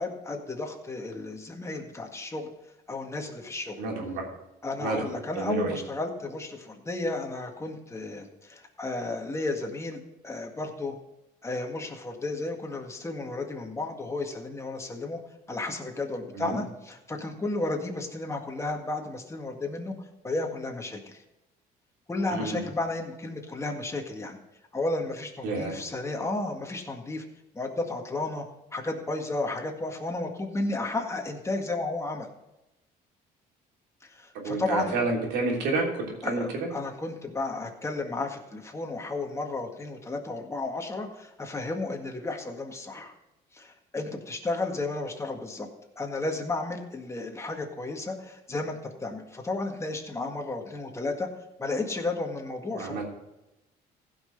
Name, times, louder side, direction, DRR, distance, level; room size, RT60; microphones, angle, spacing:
voice 1, 0.0-2.5 2.9-3.8 4.6-10.9 11.4-15.2 15.5-19.9 20.2-21.2 22.1-24.4 24.7-27.2 27.5-28.5 28.7-32.3 34.0-34.9 36.2-43.1 43.5-45.7 46.0-51.3 51.6-53.0, left 2 dB, 15° left, 2 dB, 1.8 m, -33 dB
voice 2, 3.8-4.2 4.8-5.8 16.3-16.6 22.3-22.6 25.4-25.7 34.3-36.7 52.7-53.0, right 3 dB, 90° right, -1 dB, 3.3 m, -30 dB
15.5 x 6.0 x 5.3 m, 0.95 s
cardioid pair, 110°, 17 cm